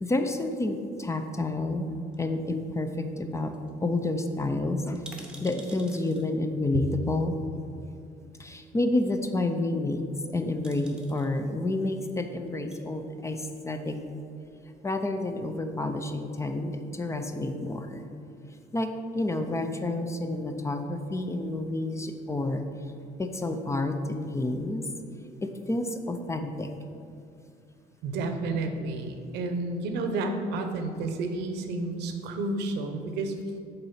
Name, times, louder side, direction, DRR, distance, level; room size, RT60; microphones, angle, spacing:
voice 1, 0.0-3.5 3.8-5.0 5.4-7.4 8.4-10.0 10.3-14.0 14.8-18.1 18.7-22.7 23.2-24.9 25.4-26.7, left 2 dB, 15° left, 7 dB, 0.5 m, -29 dB
sound 1, 2.1-2.9 3.2-3.3 3.5-3.7 4.0-4.1 4.8-6.3 7.4-7.5 10.1-10.3 10.6-11.3 12.4-12.8 13.5-14.2 14.4-14.5, right 1 dB, 5° right, 0.9 m, -49 dB
voice 2, 28.0-33.3, right 2 dB, 80° right, 6 dB, 0.8 m, -31 dB
6.7 x 4.2 x 5.6 m, 2.4 s
cardioid pair, 110°, 17 cm